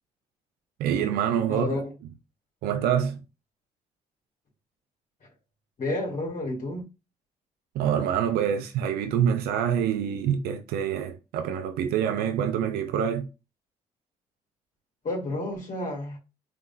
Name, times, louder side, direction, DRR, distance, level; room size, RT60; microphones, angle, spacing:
voice 1, 0.8-1.7 2.6-3.2 7.7-13.3, right 9 dB, 80° right, 0.5 m, -26 dB
voice 2, 1.5-1.9 5.8-6.9 15.0-16.2, left 2 dB, 50° left, 1.8 m, -30 dB
3.6 x 3.2 x 2.6 m
supercardioid pair, 60°, 16 cm